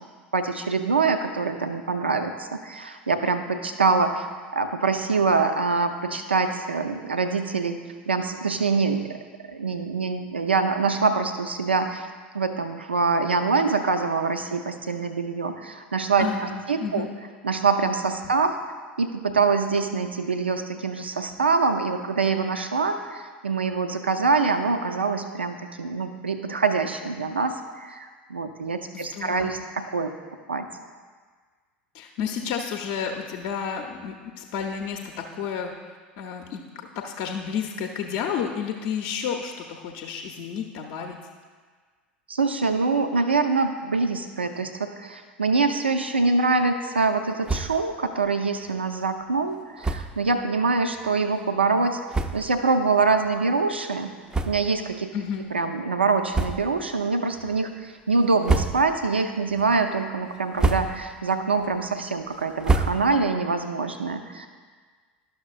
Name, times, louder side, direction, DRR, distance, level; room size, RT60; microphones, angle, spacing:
voice 1, 0.3-4.3 4.5-7.8 8.1-9.2 9.5-12.1 12.3-16.3 16.7-17.0 17.4-18.6 19.0-30.1 30.5-30.7 42.3-52.0 52.3-54.1 54.5-55.1 55.5-64.5, right 4 dB, 80° right, 7 dB, 0.4 m, -24 dB
voice 2, 16.2-17.1 28.9-29.6 31.9-41.2 55.1-55.5, left 7 dB, 50° left, 2 dB, 0.6 m, -31 dB
sound 1, 47.4-47.9 48.2-48.3 48.6-48.8 49.8-50.2 51.0-51.1 51.7-51.8 52.1-52.6 53.2-53.3 54.3-54.9 55.3-55.4 56.3-56.9 57.3-57.8 58.2-59.1 59.5-59.9 60.3-61.2 61.6-63.4, right 3 dB, 10° right, 0.4 m, -28 dB
12.0 x 6.2 x 2.4 m, 1.5 s
figure-of-eight pair, 75°, 6 cm